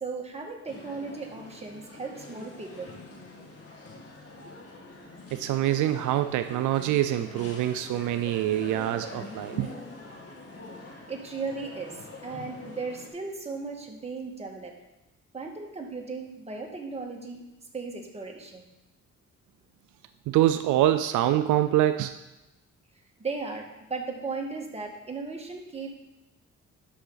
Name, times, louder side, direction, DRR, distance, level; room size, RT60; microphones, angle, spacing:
voice 1, 0.0-3.0 11.1-14.7 15.3-17.4 17.7-18.7 23.2-25.9, right 4 dB, 20° right, 0 dB, 1.8 m, -36 dB
sound 1, 0.7-13.1, left 2 dB, 50° left, 2.0 m, -44 dB
voice 2, 5.3-9.7 20.3-22.1, right 13 dB, 80° right, 10 dB, 0.5 m, -25 dB
12.0 x 5.8 x 4.0 m, 1.0 s
cardioid pair, 90°, 30 cm